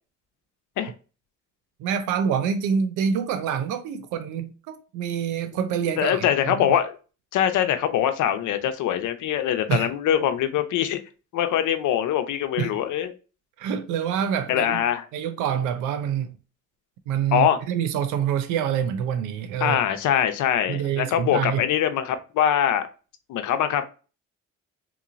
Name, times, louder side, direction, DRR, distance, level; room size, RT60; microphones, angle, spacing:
voice 1, 1.8-6.6 9.7-9.9 12.6-12.8 13.6-14.8 15.1-16.4 17.1-19.8 20.7-21.6, right 8 dB, 90° right, 0.4 m, -26 dB
voice 2, 6.0-7.0 7.3-11.0 11.3-13.1 14.5-15.1 17.3-17.6 19.6-22.9 23.3-23.8, left 10 dB, 80° left, 0.6 m, -23 dB
3.8 x 2.9 x 2.4 m
cardioid pair, 90°, 30 cm